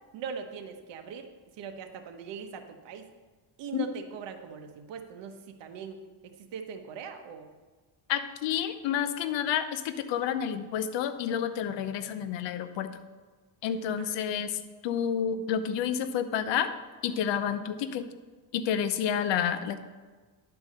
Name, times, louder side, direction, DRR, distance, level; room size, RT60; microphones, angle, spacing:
voice 1, 0.1-1.3 1.6-3.1 3.6-6.0 6.2-7.5 14.0-14.2, right 6 dB, 80° right, 6 dB, 1.2 m, -41 dB
voice 2, 8.1-12.9 13.6-16.7 17.0-18.1 18.5-19.8, left 8 dB, 85° left, 10 dB, 0.8 m, -29 dB
11.0 x 4.7 x 6.6 m, 1.4 s
cardioid pair, 115°, 42 cm